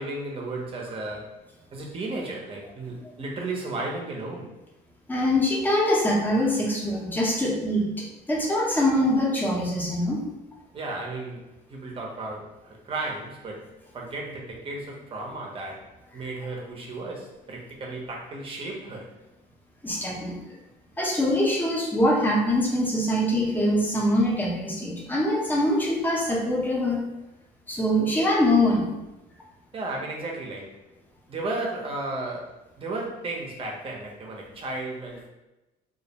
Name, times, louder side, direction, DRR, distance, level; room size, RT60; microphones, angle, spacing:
voice 1, 0.0-4.5 10.7-13.7 13.9-19.1 29.7-30.8 31.3-35.3, right 2 dB, 35° right, -1 dB, 0.6 m, -34 dB
voice 2, 5.1-10.2 19.8-20.3 21.0-27.0 27.7-28.9, left 1 dB, 10° left, -3 dB, 0.6 m, -23 dB
2.3 x 2.1 x 2.8 m, 1.0 s
cardioid pair, 110°, 17 cm